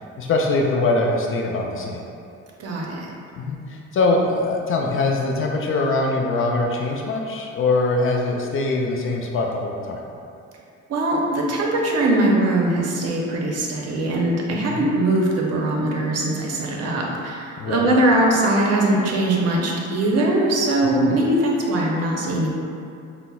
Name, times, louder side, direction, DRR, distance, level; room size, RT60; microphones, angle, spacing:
voice 1, 0.2-2.0 3.4-10.0 14.7-14.9 17.6-17.9 21.0-21.2, left 2 dB, 45° left, 0 dB, 0.4 m, -23 dB
voice 2, 2.6-3.1 10.9-22.5, right 1 dB, 55° right, -1 dB, 0.6 m, -21 dB
5.3 x 2.0 x 2.3 m, 2.5 s
cardioid pair, 90°, 30 cm